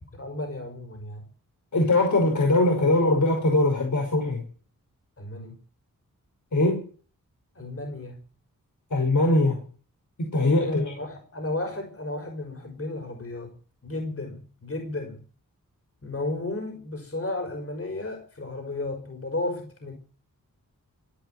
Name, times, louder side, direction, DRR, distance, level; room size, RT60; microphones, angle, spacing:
voice 1, 0.1-1.3 5.2-5.6 7.5-8.2 10.5-13.5 13.8-15.2 16.0-19.9, left 2 dB, 40° left, 4 dB, 5.4 m, -33 dB
voice 2, 1.7-4.4 6.5-6.8 8.9-9.6 10.2-10.8, left 2 dB, 60° left, 1 dB, 5.4 m, -21 dB
15.0 x 9.4 x 9.2 m, 0.42 s
wide cardioid pair, 70°, 34 cm